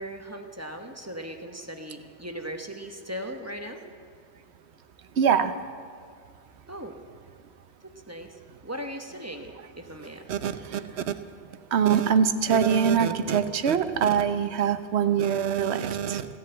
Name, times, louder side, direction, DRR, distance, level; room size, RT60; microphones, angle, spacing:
voice 1, 0.0-3.8 6.7-7.0 7.8-10.4, equal, 15° right, 4 dB, 1.0 m, -38 dB
voice 2, 5.2-5.5 10.3-11.2 11.7-16.3, right 7 dB, 85° right, 11 dB, 1.0 m, -23 dB
16.5 x 10.5 x 7.8 m, 2.3 s
omnidirectional pair, 1.1 m